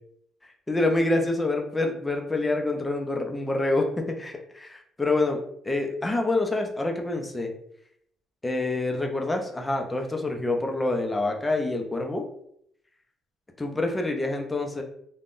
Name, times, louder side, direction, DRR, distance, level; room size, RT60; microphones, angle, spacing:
voice 1, 0.7-5.4 5.6-7.5 8.4-12.2 13.6-14.8, left 2 dB, 10° left, 3 dB, 0.4 m, -26 dB
3.6 x 2.1 x 2.4 m, 0.69 s
cardioid pair, 150°, 0 cm